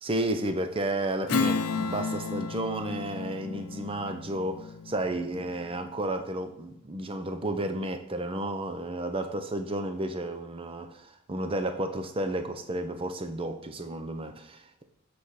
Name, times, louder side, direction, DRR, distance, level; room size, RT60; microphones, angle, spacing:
voice 1, 0.0-14.8, right 1 dB, 25° right, 7 dB, 0.6 m, -32 dB
Strum, 1.3-6.2, left 4 dB, 90° left, 0.5 m, -33 dB
8.0 x 4.3 x 4.7 m, 0.79 s
head